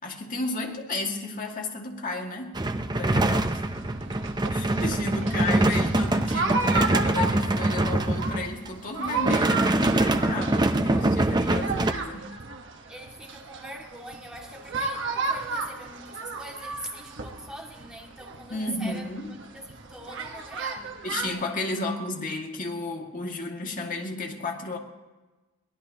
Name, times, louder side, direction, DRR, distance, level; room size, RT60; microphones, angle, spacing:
voice 1, 0.0-2.6 2.9-3.6 4.5-12.4 18.5-19.3 21.0-24.8, left 2 dB, 40° left, 1 dB, 2.1 m, -33 dB
sound 1, 2.5-8.7 9.1-11.9, right 2 dB, 20° right, 0.7 m, -24 dB
sound 2, 3.2-21.3, right 3 dB, 60° right, 1.3 m, -34 dB
voice 2, 11.4-11.8 12.9-19.1 19.5-21.0, right 1 dB, 5° right, -1 dB, 2.2 m, -42 dB
23.0 x 17.5 x 2.9 m, 1.2 s
head